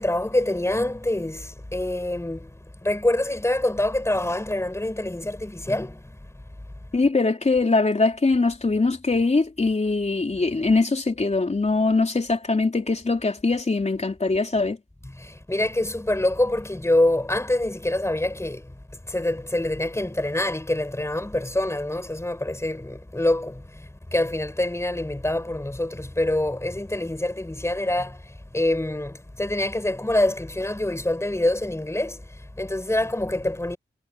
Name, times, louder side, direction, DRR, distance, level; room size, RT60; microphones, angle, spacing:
voice 1, 0.0-6.7 15.0-33.8, left 1 dB, 15° left, 5.8 m, -26 dB
voice 2, 6.9-14.8, left 3 dB, 35° left, 4.0 m, -22 dB
wide cardioid pair, 100°, 19 cm